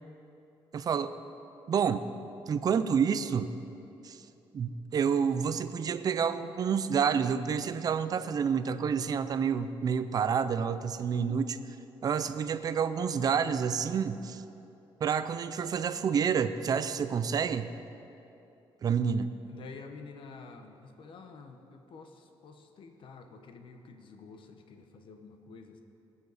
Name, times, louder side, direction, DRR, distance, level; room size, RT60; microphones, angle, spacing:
voice 1, 0.7-1.1 1.7-2.0 2.5-3.5 4.0-4.2 4.5-11.6 12.0-14.4 15.0-17.7 18.8-19.3, right 7 dB, 40° right, 11 dB, 0.5 m, -29 dB
voice 2, 19.5-25.8, left 4 dB, 60° left, 6 dB, 1.0 m, -49 dB
19.5 x 7.1 x 4.1 m, 2.9 s
cardioid pair, 125°, 9 cm